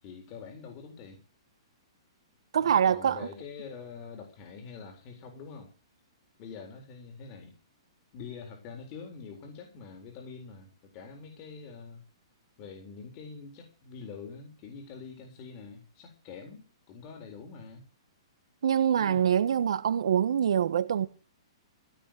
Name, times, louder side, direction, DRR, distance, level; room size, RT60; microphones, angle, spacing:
voice 1, 0.0-1.2 2.5-5.7 6.4-7.6 8.1-12.0 12.6-17.8 19.0-19.3, left 5 dB, 35° left, 4.0 m, -45 dB
voice 2, 2.5-3.3 18.6-21.1, right 8 dB, 75° right, 1.4 m, -25 dB
16.0 x 6.5 x 9.0 m
hypercardioid pair, 150°, 3 cm